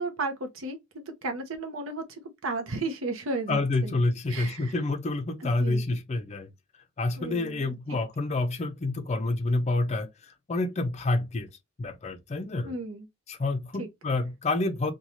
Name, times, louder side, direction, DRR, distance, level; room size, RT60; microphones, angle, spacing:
voice 1, 0.0-4.0 4.3-4.8 5.4-5.8 7.2-7.7 12.6-13.1 13.8-13.9, right 2 dB, 75° right, 0.7 m, -34 dB
voice 2, 3.5-6.5 7.0-11.5 11.8-12.7 13.3-14.9, left 2 dB, 35° left, 0.4 m, -28 dB
3.1 x 2.3 x 2.6 m
head